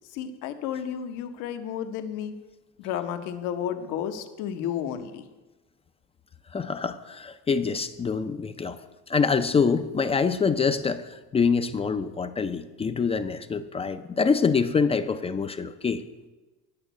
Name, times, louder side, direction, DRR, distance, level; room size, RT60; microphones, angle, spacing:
voice 1, 0.1-2.3 2.8-5.2, left 9 dB, 75° left, 7 dB, 1.0 m, -32 dB
voice 2, 6.5-8.8 9.1-16.0, left 5 dB, 20° left, 10 dB, 0.4 m, -25 dB
8.8 x 6.2 x 8.0 m, 1.2 s
cardioid pair, 120°, 32 cm